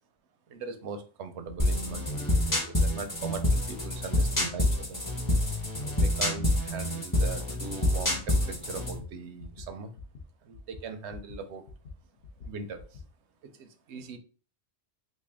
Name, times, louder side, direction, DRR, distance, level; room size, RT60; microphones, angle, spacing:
voice 1, 0.5-5.0 5.8-9.9 10.4-11.6 12.4-13.0 13.4-14.2, right 4 dB, 80° right, 8 dB, 0.9 m, -40 dB
sound 1, 1.5-1.6 2.4-2.5 3.3-3.4 4.1-4.2 5.1-5.2 5.9-6.0 6.8-6.9 7.6-7.7 8.4-8.5 8.8-9.1 9.4-9.7 9.9-10.3 10.5-11.4 11.7-13.1, left 4 dB, 65° left, 0.9 m, -45 dB
sound 2, 1.6-9.0, left 1 dB, 20° left, 0.8 m, -27 dB
3.2 x 2.6 x 3.5 m, 0.38 s
omnidirectional pair, 1.1 m